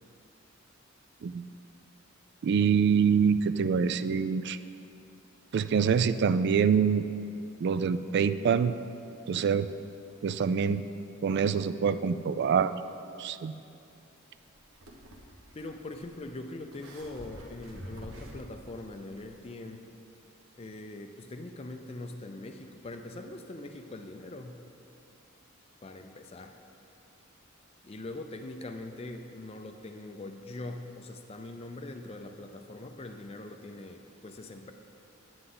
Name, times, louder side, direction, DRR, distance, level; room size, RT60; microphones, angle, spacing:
voice 1, 2.4-4.6 5.5-7.0 7.6-8.7 9.3-9.7 10.2-10.8 11.2-12.7 13.2-13.6, right 6 dB, 55° right, 13 dB, 0.3 m, -25 dB
sound 1, 14.3-19.5, equal, 80° right, 1.2 m, -49 dB
voice 2, 15.5-19.9 20.6-24.6 25.8-26.6 27.8-34.7, left 2 dB, 30° left, 5 dB, 0.4 m, -42 dB
9.8 x 9.5 x 3.9 m, 2.7 s
head